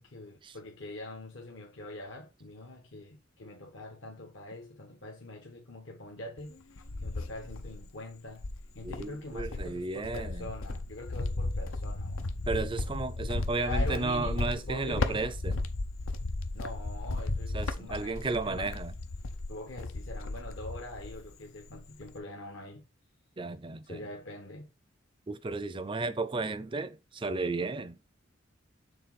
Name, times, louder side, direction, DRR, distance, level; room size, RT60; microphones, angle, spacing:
voice 1, 0.0-8.4 8.7-12.4 13.6-15.3 16.5-18.7 19.5-22.9 23.9-24.7, left 2 dB, 65° left, 1.1 m, -43 dB
Cricket, 6.4-7.9 8.4-21.3 21.6-22.2, left 2 dB, 85° left, 0.8 m, -35 dB
voice 2, 8.8-10.5 12.5-15.6 17.5-18.9 23.4-24.1 25.3-28.0, right 3 dB, 25° right, 0.5 m, -33 dB
6.9 x 3.8 x 4.1 m
head